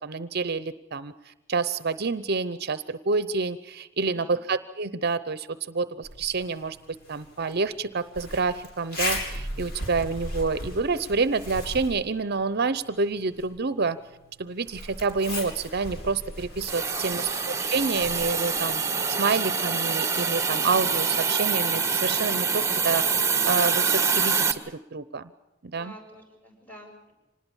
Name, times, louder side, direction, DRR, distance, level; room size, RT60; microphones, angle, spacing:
voice 1, 0.0-6.8 7.1-14.0 14.4-18.8 19.2-25.3 25.6-25.9, right 4 dB, 55° right, 14 dB, 0.8 m, -28 dB
Zipper (clothing), 6.0-19.6, left 1 dB, 55° left, 7.0 m, -38 dB
Hiss, 16.7-24.5, right 5 dB, 15° right, 1.6 m, -25 dB
voice 2, 16.9-17.3 25.8-27.1, equal, 10° left, 2 dB, 7.7 m, -48 dB
26.0 x 20.0 x 7.2 m, 1.0 s
head